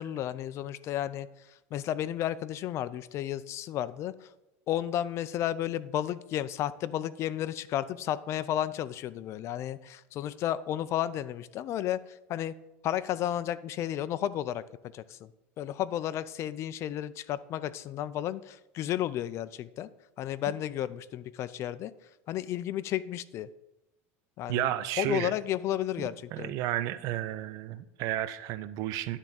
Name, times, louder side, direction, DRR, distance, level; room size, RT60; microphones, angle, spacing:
voice 1, 0.0-4.3 4.7-12.5 12.8-14.6 14.9-15.3 15.6-19.9 20.2-21.9 22.3-23.5 24.4-24.7 25.0-26.5, left 12 dB, 45° left, 16 dB, 0.4 m, -32 dB
voice 2, 24.5-25.3 26.0-29.2, right 13 dB, 60° right, 13 dB, 0.6 m, -32 dB
9.9 x 3.6 x 6.9 m, 0.91 s
supercardioid pair, 125°, 7 cm